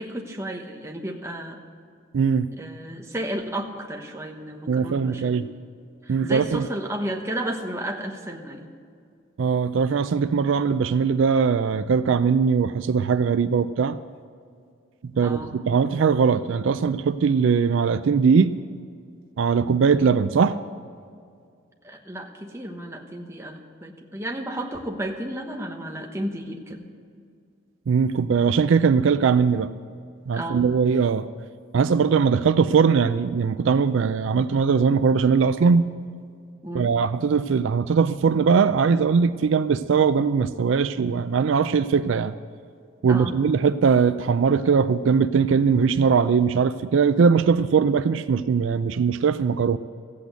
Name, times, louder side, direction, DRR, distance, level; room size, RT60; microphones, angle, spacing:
voice 1, 0.0-1.6 2.6-5.5 6.0-8.7 15.2-15.5 21.8-26.9 30.3-30.7 36.6-36.9 43.1-43.4, right 1 dB, 15° right, 2 dB, 1.1 m, -33 dB
voice 2, 2.1-2.5 4.7-5.4 6.1-6.7 9.4-14.0 15.2-18.6 19.4-20.6 27.9-29.7 30.3-31.3 31.7-35.9 36.7-42.3 43.0-49.8, right 5 dB, 70° right, 12 dB, 0.4 m, -20 dB
14.5 x 8.4 x 8.0 m, 2.3 s
head